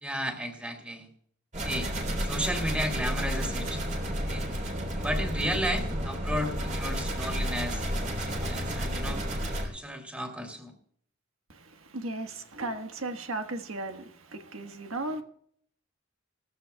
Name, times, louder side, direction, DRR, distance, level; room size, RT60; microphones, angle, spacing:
voice 1, 0.0-1.1 1.6-1.9 2.2-3.8 4.2-4.4 4.9-9.2 9.6-10.7, equal, 5° right, 2.7 m, -33 dB
sound 1, 1.5-9.7, equal, 35° right, 3.6 m, -31 dB
voice 2, 11.5-15.2, right 2 dB, 80° right, 1.4 m, -36 dB
18.5 x 15.0 x 2.3 m
head